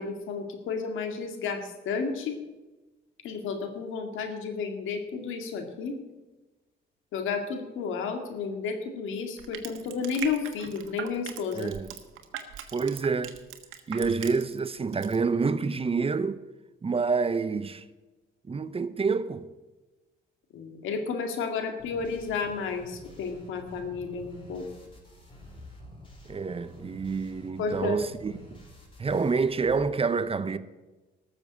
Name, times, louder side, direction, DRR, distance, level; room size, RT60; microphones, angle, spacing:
voice 1, 0.0-2.4 3.2-6.0 7.1-11.7 20.5-24.7 27.6-28.0, left 5 dB, 85° left, 2.2 m, -32 dB
Crushing, 9.4-14.7 14.9-15.2, right 10 dB, 90° right, 1.4 m, -40 dB
voice 2, 11.6-11.9 12.7-13.4 13.9-16.4 16.8-17.8 18.5-19.5 26.3-28.6 29.0-30.6, right 4 dB, 30° right, 0.8 m, -28 dB
sound 1, 21.8-29.8, left 1 dB, 25° left, 4.7 m, -49 dB
13.0 x 7.2 x 8.3 m
cardioid pair, 90°, 20 cm